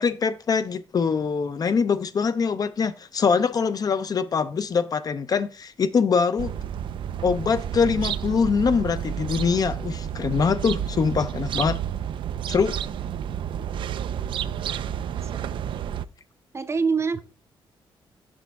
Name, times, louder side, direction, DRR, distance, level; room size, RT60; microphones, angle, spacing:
voice 1, 0.0-6.5 7.2-11.8 12.5-12.8, left 5 dB, 45° left, 0.5 m, -23 dB
sound 1, 6.4-16.1, right 9 dB, 65° right, 0.4 m, -30 dB
voice 2, 15.1-15.7 16.5-17.2, right 5 dB, 30° right, 0.6 m, -27 dB
6.2 x 5.5 x 3.5 m
cardioid pair, 95°, 9 cm